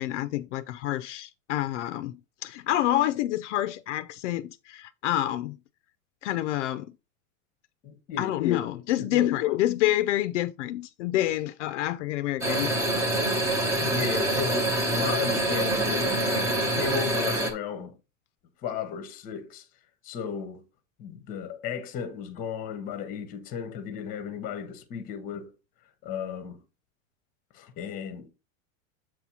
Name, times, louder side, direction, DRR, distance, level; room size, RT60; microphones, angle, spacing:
voice 1, 0.0-5.6 6.2-6.9 8.2-12.7, left 14 dB, 65° left, 0.5 m, -28 dB
voice 2, 7.8-8.3 9.1-9.3 13.8-18.0 18.6-19.7 20.0-20.6 21.0-25.5 26.0-26.6 27.5-28.3, left 6 dB, 20° left, 0.8 m, -34 dB
sound 1, 12.4-17.5, right 1 dB, 10° right, 0.5 m, -26 dB
7.6 x 2.8 x 5.9 m
supercardioid pair, 170°, 39 cm